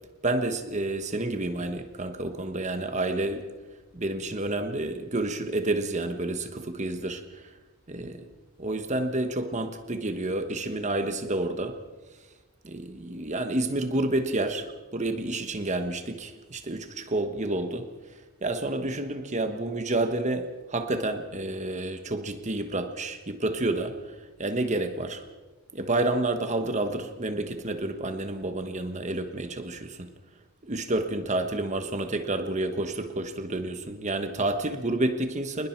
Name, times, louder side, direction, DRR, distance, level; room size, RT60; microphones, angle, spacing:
voice 1, 0.2-3.5 3.9-7.4 7.9-8.3 8.6-11.8 12.6-17.9 18.4-24.0 24.4-25.2 25.7-30.1 30.7-35.7, right 2 dB, 30° right, 1.3 m, -29 dB
28.0 x 20.5 x 4.6 m
head